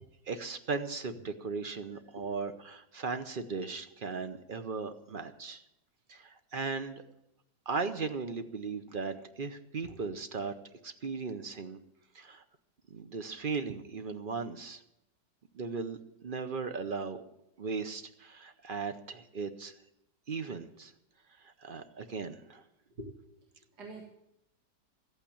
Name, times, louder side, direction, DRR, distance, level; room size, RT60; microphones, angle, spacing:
voice 1, 0.3-5.6 6.1-7.0 7.7-10.5 10.8-11.8 12.1-12.4 12.9-14.8 15.5-17.2 17.6-19.7 20.3-20.9 21.4-22.6, right 4 dB, 45° right, 9 dB, 0.7 m, -37 dB
voice 2, 2.2-2.3 9.8-10.0 22.9-23.1 23.8-24.0, right 1 dB, 65° right, 0 dB, 2.4 m, -44 dB
14.0 x 8.8 x 8.6 m, 0.82 s
omnidirectional pair, 1.9 m